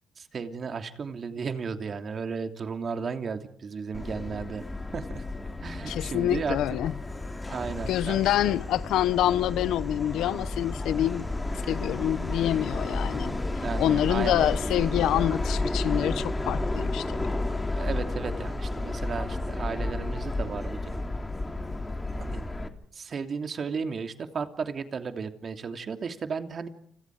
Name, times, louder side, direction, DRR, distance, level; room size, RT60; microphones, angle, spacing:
voice 1, 0.2-4.6 4.9-5.3 5.6-6.6 7.5-8.5 13.5-14.5 17.8-21.0 22.2-22.4 22.9-26.7, right 5 dB, 45° right, 3.0 m, -34 dB
Subway metro underground, 3.9-22.7, left 2 dB, 15° left, 3.1 m, -32 dB
voice 2, 5.9-6.9 7.9-11.3 11.7-17.3, left 12 dB, 85° left, 1.0 m, -26 dB
30.0 x 26.0 x 4.9 m
cardioid pair, 90°, 0 cm